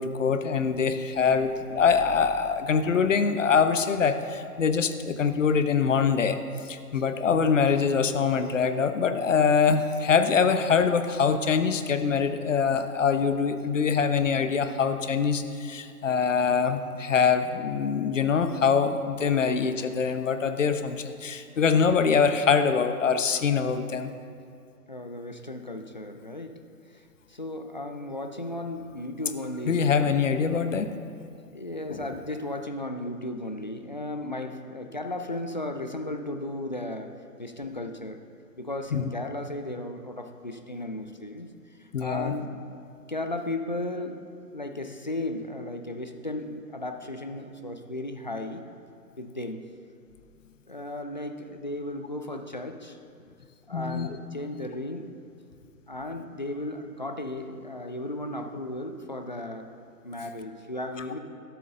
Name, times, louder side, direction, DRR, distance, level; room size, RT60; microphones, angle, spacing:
voice 1, 0.0-6.4 6.7-24.1 29.7-30.9 31.9-32.0 38.9-39.1 41.9-42.3 53.7-54.2, left 6 dB, 50° left, 10 dB, 0.9 m, -24 dB
voice 2, 24.9-26.6 26.9-30.1 31.5-37.1 37.4-38.2 38.6-41.5 41.8-42.6 43.1-44.2 44.5-48.6 49.2-49.6 50.7-53.0 53.7-55.1 55.9-59.7 60.0-61.2, left 1 dB, 30° left, 6 dB, 0.4 m, -35 dB
12.5 x 12.0 x 3.8 m, 2.4 s
figure-of-eight pair, 135°, 47 cm